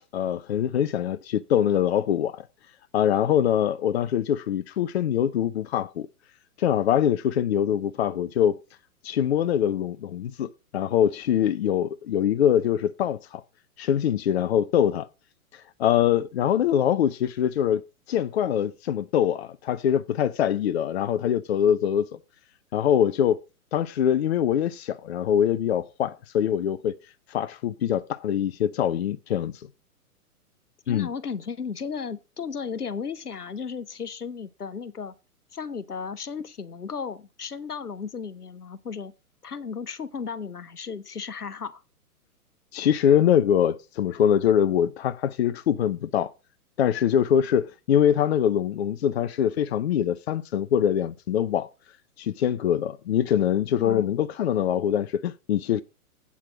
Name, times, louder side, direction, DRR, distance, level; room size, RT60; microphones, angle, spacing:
voice 1, 0.1-2.5 2.9-6.1 6.6-8.6 9.0-13.4 13.8-15.1 15.8-17.8 18.1-22.2 22.7-23.4 23.7-26.9 27.3-29.5 30.9-31.1 42.7-46.3 46.8-51.7 52.2-55.8, left 9 dB, 45° left, 0.6 m, -23 dB
voice 2, 30.9-35.1 35.5-39.1 39.4-41.8 53.8-54.1, left 6 dB, 85° left, 0.8 m, -35 dB
8.5 x 5.8 x 5.7 m
figure-of-eight pair, 115°, 45 cm